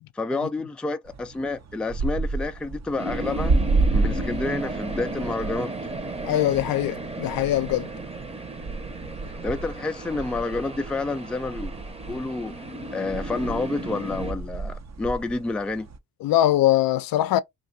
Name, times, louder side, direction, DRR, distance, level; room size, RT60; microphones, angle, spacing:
voice 1, 0.2-3.5 3.9-5.7 9.4-11.7 12.1-12.5 12.9-15.9, left 3 dB, 5° left, 0.4 m, -29 dB
sound 1, 1.1-16.0, right 3 dB, 40° right, 0.8 m, -31 dB
sound 2, 3.0-14.3, right 1 dB, 15° right, 0.9 m, -35 dB
voice 2, 6.2-7.9 16.2-17.4, left 13 dB, 60° left, 0.5 m, -22 dB
2.6 x 2.6 x 4.0 m
supercardioid pair, 65°, 39 cm